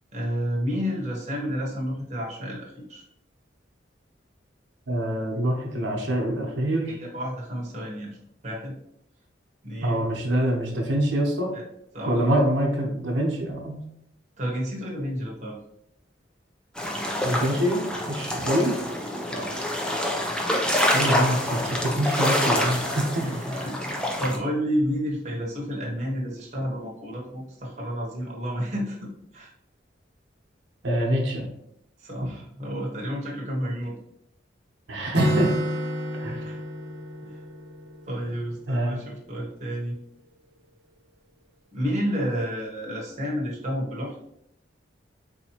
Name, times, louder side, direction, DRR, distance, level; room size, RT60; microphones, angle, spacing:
voice 1, 0.1-3.0 6.9-8.2 8.4-8.7 9.6-10.1 11.5-11.6 11.9-12.2 14.4-15.6 19.3-19.6 23.2-29.5 32.0-34.0 36.4-36.6 37.2-37.4 38.1-40.0 41.7-44.2, equal, 40° right, -3 dB, 0.9 m, -30 dB
voice 2, 4.9-6.9 9.8-11.5 12.0-13.8 17.2-18.7 20.9-23.3 30.8-31.5 34.9-35.5 36.2-36.4 38.7-39.0, right 1 dB, 85° right, -1 dB, 0.9 m, -25 dB
sound 1, 16.8-24.4, left 1 dB, 5° left, 0.4 m, -26 dB
Acoustic guitar, 35.1-38.9, equal, 60° right, 0.6 m, -31 dB
4.0 x 2.8 x 2.9 m, 0.75 s
head